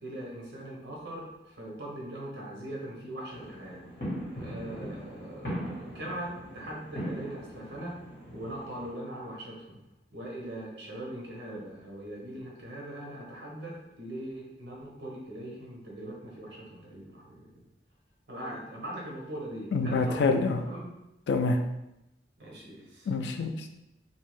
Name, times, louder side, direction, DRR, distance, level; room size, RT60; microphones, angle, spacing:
voice 1, 0.0-3.8 4.4-8.0 8.3-9.8 10.1-17.5 18.3-20.2 20.6-20.9 22.4-23.1, right 1 dB, 85° right, -3 dB, 0.9 m, -41 dB
sound 1, 3.3-8.9, equal, 55° left, 1.0 m, -40 dB
voice 2, 19.7-20.6 21.3-21.6 23.1-23.7, left 3 dB, 80° left, 6 dB, 0.3 m, -26 dB
2.6 x 2.1 x 3.1 m, 0.89 s
head